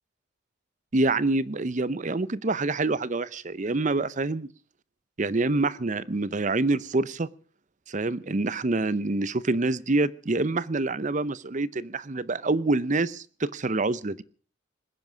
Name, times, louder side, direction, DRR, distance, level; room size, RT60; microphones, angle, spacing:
voice 1, 0.9-4.5 5.2-7.3 7.9-14.2, right 2 dB, 35° right, 19 dB, 0.6 m, -26 dB
20.0 x 10.5 x 6.2 m, 0.42 s
head